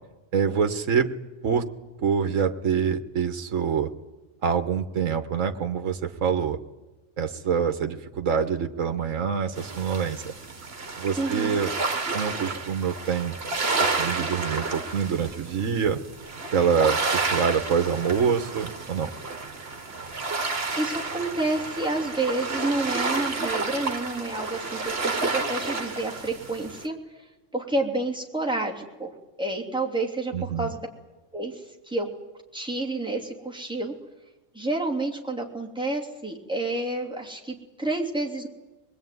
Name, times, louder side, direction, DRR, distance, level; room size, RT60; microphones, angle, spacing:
voice 1, 0.3-1.1 1.4-1.7 2.0-3.9 4.4-6.6 7.2-10.3 11.0-11.7 12.0-13.4 13.8-16.0 16.5-19.1 30.3-30.7, right 7 dB, 75° right, 8 dB, 1.5 m, -25 dB
sound 1, 9.5-26.8, right 3 dB, 50° right, 1.9 m, -30 dB
voice 2, 11.2-11.6 20.8-26.9 27.5-29.1 29.4-30.9 31.3-32.1 32.5-33.9 34.5-38.5, right 2 dB, 5° right, 0 dB, 3.1 m, -29 dB
25.5 x 20.5 x 9.4 m, 1.1 s
omnidirectional pair, 1.3 m